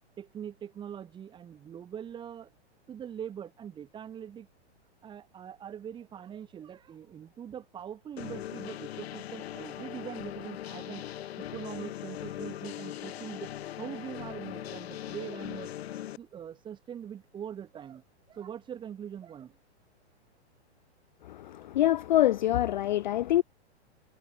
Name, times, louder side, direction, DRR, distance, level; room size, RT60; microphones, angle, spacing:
voice 1, 0.2-2.5 2.9-4.5 5.0-11.0 11.4-15.7 16.2-19.6, right 9 dB, 15° right, 3.2 m, -42 dB
sound 1, 8.2-16.2, left 12 dB, 60° left, 1.8 m, -40 dB
voice 2, 21.2-23.4, left 13 dB, 45° left, 0.4 m, -25 dB
hypercardioid pair, 165°, 35 cm